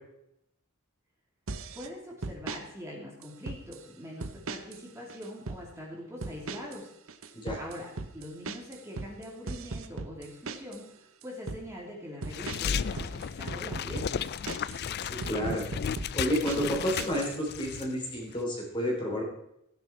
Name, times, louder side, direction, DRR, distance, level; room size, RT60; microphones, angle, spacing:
sound 1, 1.5-1.9 2.2-2.6 3.2-3.8 4.2-4.8 5.1-5.6 6.2-6.8 7.1-10.8 11.2-11.6 12.2-14.8 15.2-17.4, right 3 dB, 65° right, 0.9 m, -38 dB
voice 1, 1.7-6.9 7.6-10.9 11.2-14.2, equal, 15° right, -3 dB, 2.7 m, -43 dB
sound 2, 12.3-17.9 18.2-18.4, left 7 dB, 50° left, 0.4 m, -34 dB
voice 2, 15.1-15.7 16.1-19.2, equal, 20° left, -1 dB, 3.5 m, -30 dB
15.5 x 10.5 x 4.5 m, 0.78 s
head